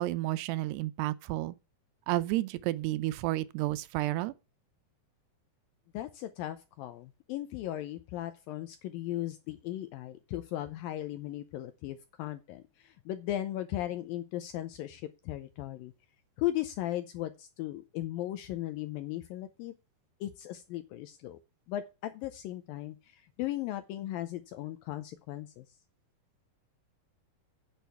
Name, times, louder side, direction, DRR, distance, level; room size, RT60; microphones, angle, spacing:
voice 1, 0.0-1.6 2.1-4.3, right 17 dB, 85° right, 2.7 m, -31 dB
voice 2, 5.9-15.9 16.4-19.7 20.2-21.4 21.7-25.7, left 14 dB, 85° left, 2.1 m, -37 dB
9.3 x 6.6 x 5.6 m
omnidirectional pair, 4.8 m